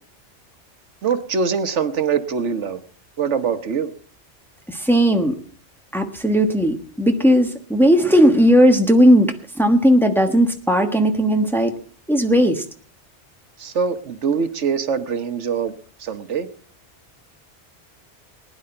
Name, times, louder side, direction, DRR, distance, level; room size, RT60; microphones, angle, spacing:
voice 1, 1.0-2.8 3.2-3.9 13.6-15.7 16.0-16.5, right 6 dB, 85° right, 10 dB, 1.4 m, -23 dB
voice 2, 4.7-5.4 5.9-11.7 12.1-12.6, equal, ahead, 4 dB, 1.3 m, -16 dB
20.0 x 10.5 x 4.4 m, 0.43 s
omnidirectional pair, 1.2 m